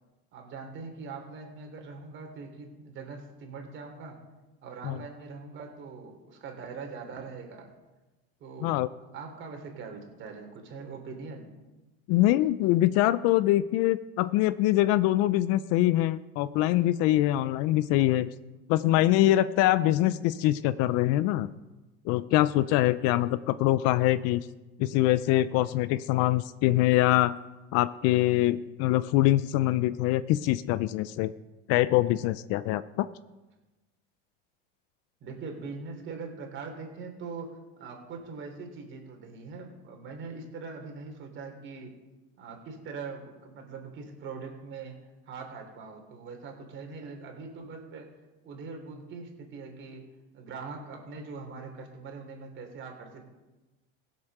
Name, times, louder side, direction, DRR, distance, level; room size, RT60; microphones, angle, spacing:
voice 1, 0.3-4.2 4.6-7.7 8.4-8.8 9.1-11.5 35.2-41.9 42.4-45.0 45.3-48.1 48.4-50.1 50.3-53.3, right 4 dB, 40° right, 3 dB, 3.2 m, -42 dB
voice 2, 12.1-18.3 18.7-21.5 22.1-24.5 24.8-27.4 27.7-31.3 31.7-33.1, left 15 dB, 50° left, 16 dB, 0.5 m, -24 dB
16.0 x 7.5 x 6.6 m, 1.1 s
supercardioid pair, 135°, 31 cm